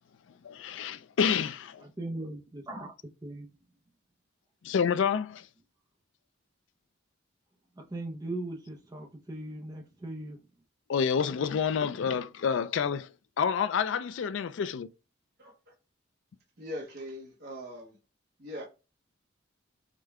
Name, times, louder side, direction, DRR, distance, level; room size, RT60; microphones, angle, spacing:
voice 1, 0.4-1.8 4.6-5.4 10.9-13.1 13.4-14.9, left 7 dB, 70° left, 0.3 m, -28 dB
voice 2, 1.8-2.9 3.2-3.5 7.8-10.4, right 2 dB, 20° right, 0.5 m, -39 dB
voice 3, 16.6-18.0 18.4-18.7, equal, 50° right, 0.9 m, -40 dB
5.0 x 2.2 x 3.5 m
head